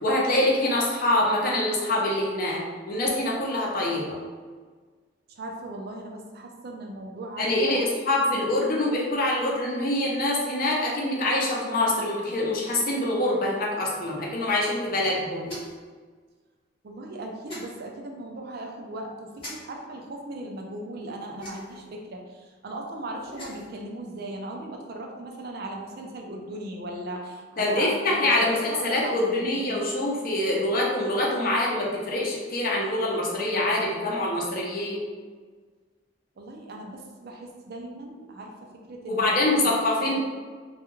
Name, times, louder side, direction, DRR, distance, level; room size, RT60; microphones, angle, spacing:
voice 1, 0.0-4.2 7.4-15.5 27.6-35.0 39.1-40.2, left 1 dB, 50° left, -3 dB, 0.6 m, -25 dB
voice 2, 5.3-7.8 16.8-29.9 36.4-39.3 39.6-39.7 40.0-40.2, right 1 dB, 55° right, 1 dB, 0.4 m, -38 dB
sound 1, 15.4-15.9 17.5-17.7 19.4-19.5 21.4-21.8 23.2-23.7, equal, 30° left, 1.1 m, -39 dB
2.3 x 2.2 x 3.0 m, 1.5 s
head